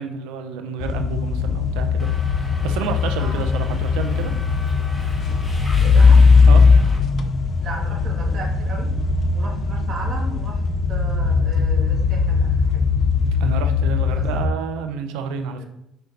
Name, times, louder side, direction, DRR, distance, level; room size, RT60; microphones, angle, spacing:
voice 1, 0.0-4.3 6.5-6.6 13.4-15.6, right 6 dB, 85° right, 7 dB, 0.9 m, -29 dB
sound 1, 0.8-14.5, left 5 dB, 45° left, 0.8 m, -19 dB
Subway metro underground, 2.0-7.0, equal, 10° left, 1.7 m, -40 dB
voice 2, 3.2-3.5 5.8-6.2 7.6-8.9 9.3-10.6 10.9-12.7 14.1-14.2 15.6-15.7, right 3 dB, 55° right, -2 dB, 2.7 m, -35 dB
6.9 x 5.1 x 4.0 m, 0.82 s
supercardioid pair, 95°, 0 cm